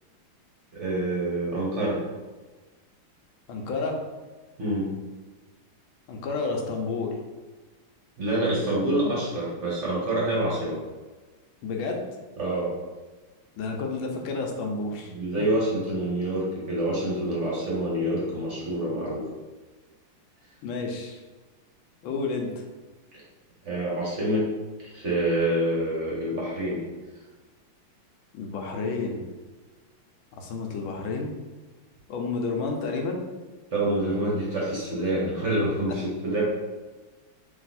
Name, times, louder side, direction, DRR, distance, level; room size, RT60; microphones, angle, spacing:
voice 1, 0.7-2.0 4.6-5.0 8.2-10.8 12.4-12.7 15.1-19.2 23.6-24.4 24.9-26.8 33.7-36.4, right 1 dB, 45° right, -5 dB, 1.0 m, -27 dB
voice 2, 3.5-4.0 6.1-7.1 11.6-12.0 13.6-15.4 20.6-21.2 22.0-22.5 28.3-29.2 30.4-31.3 32.1-33.2, left 4 dB, 70° left, 2 dB, 1.4 m, -30 dB
3.4 x 2.9 x 4.1 m, 1.3 s
omnidirectional pair, 2.4 m